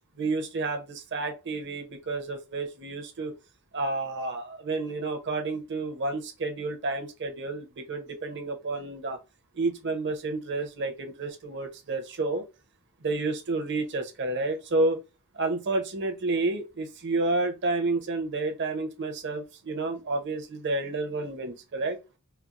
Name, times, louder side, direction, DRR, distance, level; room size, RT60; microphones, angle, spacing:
voice 1, 0.2-3.3 3.7-9.2 9.5-12.4 13.0-15.0 15.3-22.0, right 3 dB, 55° right, 0.9 m, -30 dB
4.3 x 2.0 x 2.4 m
head